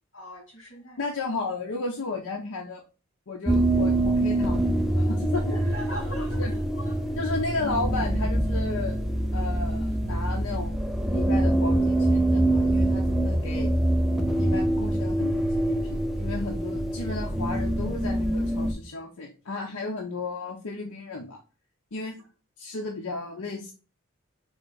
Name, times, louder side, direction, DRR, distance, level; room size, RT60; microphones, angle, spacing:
voice 1, 0.1-1.0 5.5-7.2, equal, 60° left, 2.4 m, -40 dB
voice 2, 1.0-2.8 3.3-5.6 6.4-6.5 7.2-9.0 9.3-10.8 11.1-13.7 14.4-21.4 21.9-22.2 22.6-23.7, left 3 dB, 90° left, 0.8 m, -33 dB
sound 1, 3.5-18.7, right 1 dB, ahead, 0.4 m, -25 dB
3.9 x 3.5 x 3.8 m
head